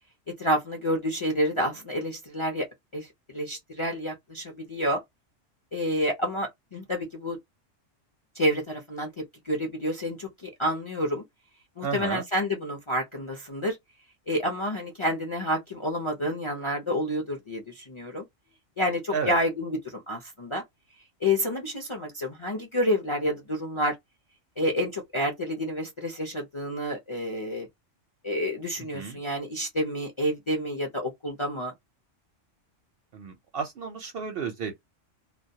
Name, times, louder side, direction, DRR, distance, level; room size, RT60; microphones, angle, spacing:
voice 1, 0.4-2.7 2.9-5.0 5.7-7.4 8.3-9.1 9.4-11.2 11.8-13.8 14.3-18.2 18.8-20.6 21.2-24.0 24.6-27.7 28.2-31.7, equal, 40° left, 0.4 m, -29 dB
voice 2, 11.8-12.2 19.1-19.4 28.9-29.2 33.1-34.8, right 6 dB, 60° right, 0.6 m, -32 dB
2.1 x 2.1 x 2.7 m
omnidirectional pair, 1.3 m